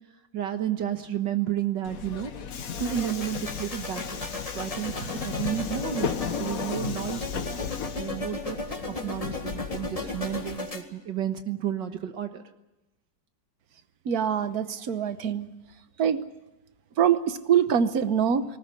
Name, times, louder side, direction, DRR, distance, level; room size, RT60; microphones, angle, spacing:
voice 1, 0.3-2.3 2.8-7.7 8.0-8.6 8.9-12.4, right 10 dB, 75° right, 7 dB, 1.9 m, -32 dB
Subway metro underground, 1.8-10.6, left 7 dB, 50° left, 1.4 m, -35 dB
sound 1, 2.8-10.8, left 3 dB, 20° left, 1.8 m, -36 dB
voice 2, 14.0-15.5 16.0-16.2 17.0-18.4, right 8 dB, 55° right, 12 dB, 1.5 m, -24 dB
19.5 x 19.0 x 9.8 m, 0.97 s
omnidirectional pair, 2.0 m